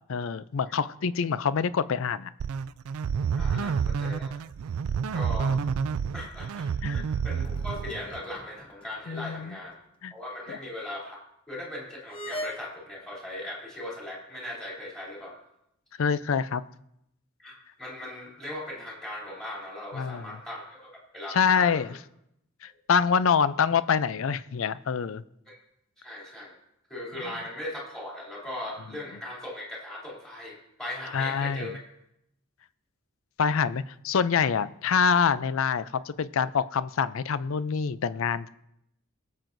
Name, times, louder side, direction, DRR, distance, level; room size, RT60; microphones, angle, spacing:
voice 1, 0.1-2.3 3.5-4.0 6.8-7.1 9.1-9.6 10.0-10.1 10.5-10.6 16.0-16.6 19.9-20.2 21.3-21.9 22.6-25.2 31.1-31.7 33.4-38.5, left 6 dB, 65° left, 16 dB, 0.4 m, -26 dB
sound 1, 2.4-8.2, right 6 dB, 80° right, 0.4 m, -29 dB
voice 2, 3.3-4.4 5.1-5.6 6.1-9.8 10.1-11.2 11.5-15.4 17.4-21.8 22.6-22.8 25.5-25.6 26.0-26.6 26.9-31.8, left 1 dB, ahead, -4 dB, 3.1 m, -39 dB
sound 2, 7.4-9.1 9.4-9.5 12.1-12.5, equal, 25° left, 0.8 m, -40 dB
21.5 x 7.6 x 2.6 m, 0.80 s
head